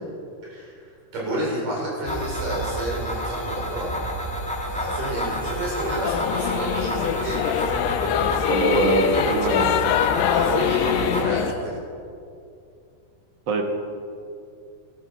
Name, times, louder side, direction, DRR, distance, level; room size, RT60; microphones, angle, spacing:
voice 1, 0.4-3.9 4.7-7.4 10.3-11.8, right 1 dB, 80° right, -4 dB, 6.2 m, -30 dB
sound 1, 2.0-11.2, equal, 10° left, 0.3 m, -29 dB
Singing / Musical instrument, 6.0-11.5, left 9 dB, 85° left, 1.5 m, -23 dB
voice 2, 8.5-10.0 13.5-13.6, right 2 dB, 55° right, 3 dB, 1.4 m, -23 dB
14.0 x 13.0 x 6.0 m, 2.5 s
omnidirectional pair, 3.7 m